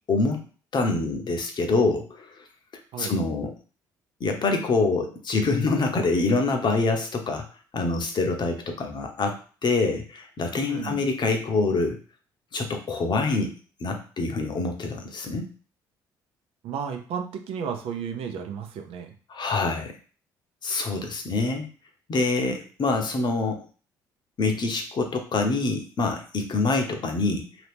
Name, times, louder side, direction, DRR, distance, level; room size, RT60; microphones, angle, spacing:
voice 1, 0.1-0.4 0.7-2.3 3.0-3.5 4.2-7.4 7.7-12.0 12.5-13.5 13.8-15.5 19.3-19.9 20.6-21.7 22.1-23.6 24.4-27.5, left 3 dB, 45° left, 4 dB, 0.9 m, -25 dB
voice 2, 10.7-11.0 16.6-19.1, right 7 dB, 70° right, 5 dB, 0.7 m, -33 dB
2.9 x 2.8 x 3.4 m, 0.39 s
hypercardioid pair, 55°, 10 cm